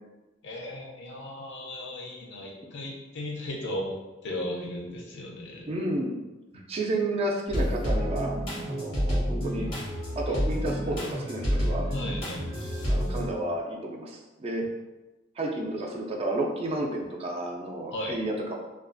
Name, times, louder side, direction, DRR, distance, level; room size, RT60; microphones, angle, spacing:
voice 1, 0.4-4.0 4.2-5.7 11.9-12.7 17.9-18.2, left 1 dB, 65° left, -1 dB, 0.5 m, -36 dB
voice 2, 5.7-6.1 6.7-8.3 8.7-9.7 10.2-11.9 12.9-14.6 15.4-18.5, right 1 dB, 30° right, 0 dB, 0.3 m, -31 dB
sound 1, 7.5-13.3, equal, 90° left, 1.0 m, -29 dB
2.3 x 2.2 x 2.5 m, 1.1 s
head